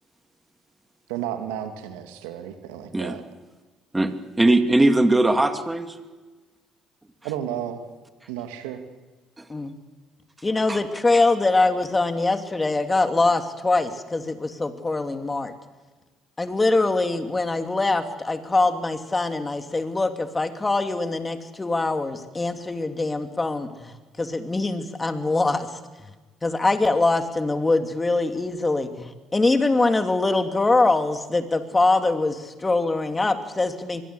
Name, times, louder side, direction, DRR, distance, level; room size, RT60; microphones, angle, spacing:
voice 1, 1.1-3.2 7.2-7.8 8.3-8.8, right 10 dB, 85° right, 6 dB, 2.4 m, -32 dB
voice 2, 4.4-5.9 9.4-9.5 10.7-10.8, right 2 dB, 15° right, 7 dB, 2.5 m, -19 dB
voice 3, 10.4-15.5 16.4-23.9 24.2-25.7 26.4-34.0, left 2 dB, 20° left, 7 dB, 3.1 m, -23 dB
24.5 x 22.5 x 8.3 m, 1.3 s
hypercardioid pair, 60°, 0 cm